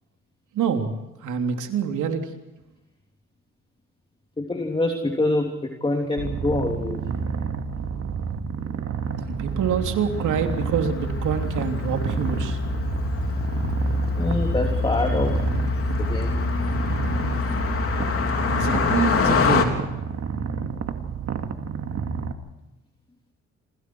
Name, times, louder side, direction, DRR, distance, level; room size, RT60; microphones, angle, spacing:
voice 1, 0.5-0.9 1.2-2.3 9.2-12.6 18.5-19.8, right 7 dB, 80° right, 4 dB, 3.3 m, -26 dB
voice 2, 4.4-7.0 14.1-15.4 16.0-16.4 19.2-19.4, left 2 dB, 15° left, 2 dB, 3.2 m, -25 dB
Purr, 6.2-22.3, right 6 dB, 55° right, 2.4 m, -30 dB
Car passing by, 9.5-19.6, left 4 dB, 50° left, 3.5 m, -25 dB
28.0 x 26.5 x 4.7 m, 1.0 s
cardioid pair, 90°, 30 cm